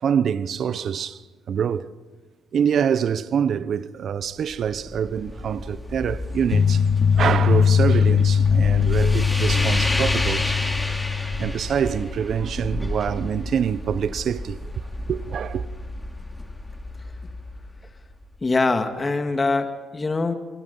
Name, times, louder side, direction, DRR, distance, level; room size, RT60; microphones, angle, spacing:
voice 1, 0.0-1.2 1.5-1.9 2.5-6.8 7.2-10.6 11.4-14.7 15.1-15.6, right 8 dB, 60° right, 0.9 m, -25 dB
sound 1, 4.3-18.4, left 1 dB, 10° left, 3.2 m, -31 dB
sound 2, 6.5-11.5, left 6 dB, 45° left, 1.2 m, -20 dB
voice 2, 18.4-20.3, left 3 dB, 25° left, 2.1 m, -23 dB
25.5 x 24.5 x 5.6 m
cardioid pair, 90°, 0 cm